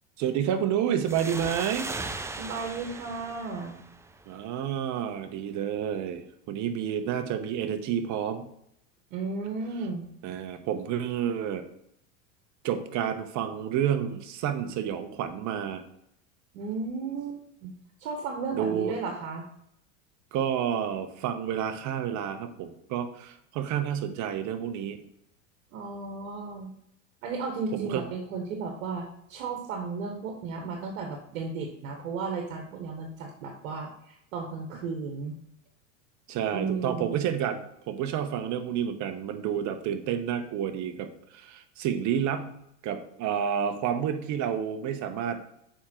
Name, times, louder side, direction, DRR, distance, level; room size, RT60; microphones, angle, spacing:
voice 1, 0.2-1.9 4.3-8.5 10.2-11.6 12.6-15.8 18.5-18.9 20.3-25.0 27.7-28.0 36.3-42.5 42.8-45.4, right 9 dB, 45° right, 8 dB, 1.1 m, -30 dB
sound 1, 1.1-4.5, right 3 dB, 10° right, 0.4 m, -38 dB
voice 2, 2.3-3.8 9.1-10.1 16.5-17.7 18.0-19.4 25.7-26.7 27.2-35.4 36.5-37.2, right 4 dB, 75° right, 2 dB, 1.5 m, -34 dB
7.3 x 5.0 x 4.5 m, 0.74 s
supercardioid pair, 110°, 39 cm